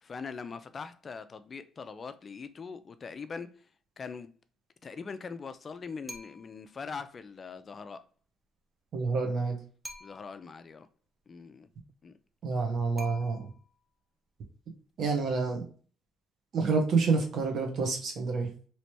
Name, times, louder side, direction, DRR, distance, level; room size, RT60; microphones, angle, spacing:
voice 1, 0.0-3.5 4.0-4.3 4.8-8.0 10.0-10.9 11.3-11.7 12.0-12.1, left 5 dB, 35° left, 0.3 m, -42 dB
sound 1, 6.1-6.7 9.8-10.5 13.0-13.8, equal, 5° right, 0.7 m, -47 dB
voice 2, 8.9-9.6 12.4-13.5 15.0-15.6 16.5-18.5, right 4 dB, 60° right, 1.0 m, -28 dB
3.2 x 3.0 x 2.8 m
cardioid pair, 95°, 0 cm